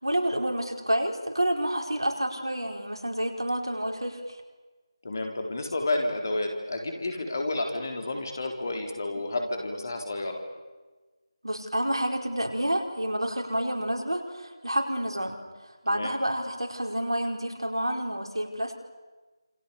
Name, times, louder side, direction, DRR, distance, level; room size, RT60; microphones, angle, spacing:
voice 1, 0.0-4.4 11.4-15.4 15.8-18.8, right 1 dB, 70° right, 2 dB, 4.8 m, -29 dB
voice 2, 5.0-10.4 15.9-16.1, left 2 dB, 40° left, 3 dB, 4.1 m, -30 dB
28.0 x 27.5 x 7.1 m, 1.3 s
figure-of-eight pair, 165°, 3 cm